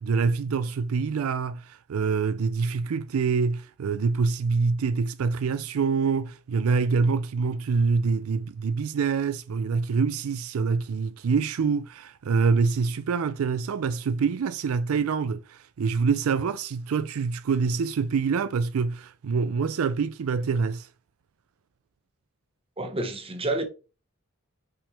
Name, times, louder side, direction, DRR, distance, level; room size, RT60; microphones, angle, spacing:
voice 1, 0.0-20.9, right 5 dB, 75° right, 0.4 m, -25 dB
voice 2, 22.8-23.6, right 2 dB, 25° right, 1.2 m, -29 dB
5.7 x 4.9 x 3.4 m
head